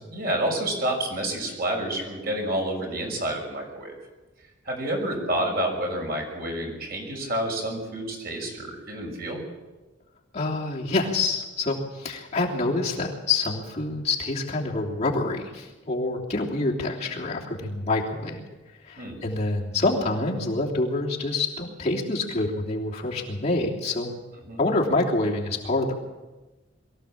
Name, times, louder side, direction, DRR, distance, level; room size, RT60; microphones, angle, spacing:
voice 1, 0.1-3.9 4.6-9.4 19.0-19.2 24.5-24.6, right 1 dB, 55° right, 1 dB, 6.1 m, -29 dB
voice 2, 10.3-18.4 18.8-24.1 24.6-25.9, left 2 dB, 35° left, -3 dB, 3.2 m, -26 dB
23.0 x 15.0 x 7.5 m, 1.2 s
head